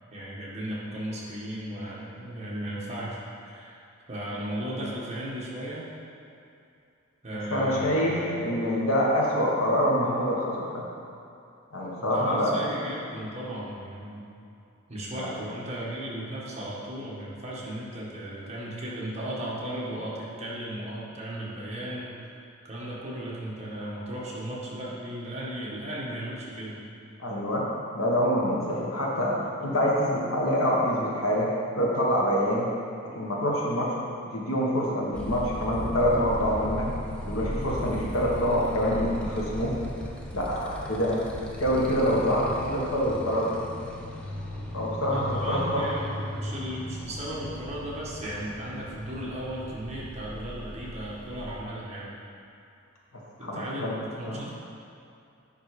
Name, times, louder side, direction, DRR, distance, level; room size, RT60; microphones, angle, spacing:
voice 1, 0.1-3.8 4.1-5.8 7.2-8.2 12.1-14.3 14.9-22.2 22.6-26.8 45.1-52.1 53.4-54.6, right 1 dB, 30° right, -6 dB, 1.6 m, -36 dB
voice 2, 7.3-10.8 11.7-12.5 15.1-15.4 27.2-27.6 27.9-31.5 31.7-32.7 33.1-33.9 34.3-36.9 37.3-39.7 40.3-41.2 41.6-43.6 44.7-45.9 53.4-54.0 54.2-54.4, equal, 75° left, -4 dB, 1.5 m, -26 dB
Motorcycle, 35.1-51.6, equal, 5° left, 0.7 m, -37 dB
10.5 x 3.7 x 4.9 m, 2.6 s
head